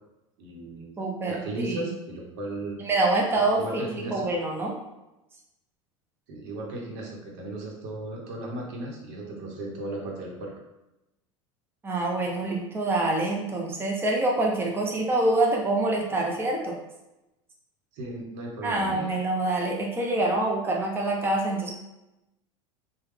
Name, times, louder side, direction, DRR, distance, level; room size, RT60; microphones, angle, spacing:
voice 1, 0.4-0.9 1.3-2.8 3.6-4.3 6.3-10.5 17.9-19.1, right 2 dB, 65° right, -1 dB, 0.9 m, -36 dB
voice 2, 1.0-1.9 2.8-4.7 11.8-16.8 18.6-21.7, right 2 dB, 15° right, -1 dB, 0.6 m, -26 dB
3.1 x 2.2 x 3.2 m, 0.96 s
hypercardioid pair, 80°, 16 cm